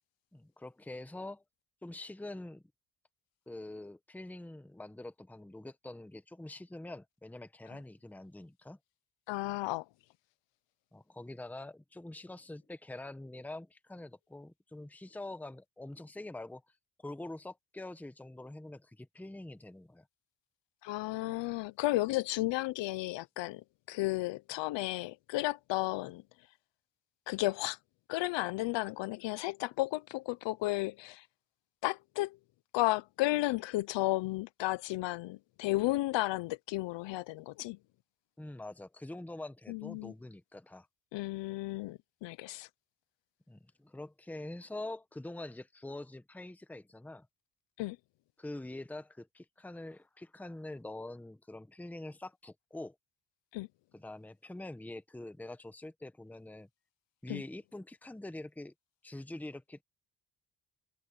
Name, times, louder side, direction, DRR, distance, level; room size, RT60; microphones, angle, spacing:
voice 1, 0.3-1.4 1.8-2.6 3.5-8.8 10.9-16.6 17.0-20.1 38.4-40.9 43.5-47.3 48.4-52.9 53.9-56.7 57.2-58.7 59.0-59.8, left 2 dB, 5° left, 1.1 m, -45 dB
voice 2, 9.3-9.9 20.8-26.2 27.3-27.8 28.1-31.3 31.8-32.4 32.7-37.8 39.7-40.1 41.1-42.7 47.8-48.0 53.5-53.7 57.3-57.4, left 18 dB, 85° left, 0.7 m, -33 dB
cardioid pair, 115°, 42 cm